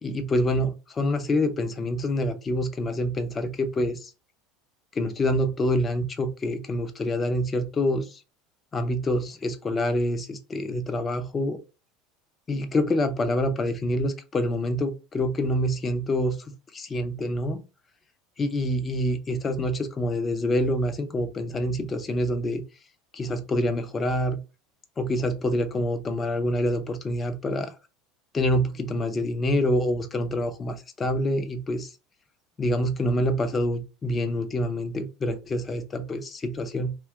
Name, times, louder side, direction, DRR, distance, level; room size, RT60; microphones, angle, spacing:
voice 1, 0.0-4.1 4.9-8.2 8.7-11.6 12.5-16.4 16.7-17.6 18.4-22.6 23.1-24.4 25.0-27.7 28.3-31.9 32.6-36.9, left 1 dB, 25° left, 8 dB, 0.6 m, -26 dB
2.7 x 2.2 x 3.4 m, 0.30 s
hypercardioid pair, 80°, 0 cm